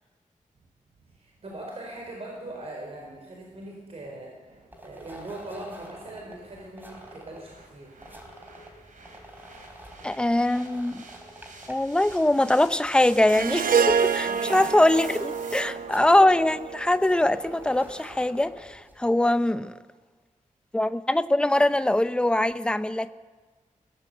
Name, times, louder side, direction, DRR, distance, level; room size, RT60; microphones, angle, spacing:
sound 1, 0.6-15.6, right 3 dB, 70° right, 3.9 m, -50 dB
voice 1, 1.1-7.9 14.2-14.9 15.4-15.7, right 1 dB, 45° right, 4.5 m, -41 dB
sound 2, 4.7-19.1, right 1 dB, 15° right, 3.9 m, -47 dB
voice 2, 10.0-11.0 11.7-19.8 20.7-23.1, left 1 dB, 5° left, 0.6 m, -22 dB
Harp, 13.3-17.7, right 6 dB, 85° right, 1.0 m, -27 dB
23.5 x 18.5 x 7.9 m
wide cardioid pair, 170°, 14 cm